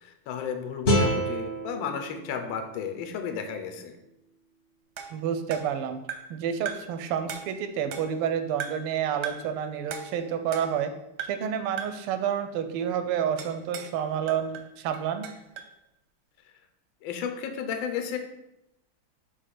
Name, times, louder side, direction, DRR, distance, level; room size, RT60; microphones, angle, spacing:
voice 1, 0.0-3.9 17.0-18.2, left 7 dB, 70° left, 6 dB, 1.4 m, -33 dB
sound 1, 0.9-4.0, equal, 40° left, 1.0 m, -29 dB
sound 2, 5.0-6.4 6.7-7.0 7.3-8.3 8.6-8.9 9.2-9.6 9.9-10.9 11.2-11.5 11.8-12.1 13.4-14.0 14.3-15.8, right 7 dB, 65° right, 1.1 m, -39 dB
voice 2, 5.1-6.0 6.3-10.9 11.3-15.3, right 8 dB, 90° right, 8 dB, 1.6 m, -29 dB
5.2 x 4.1 x 5.8 m, 0.88 s
omnidirectional pair, 2.4 m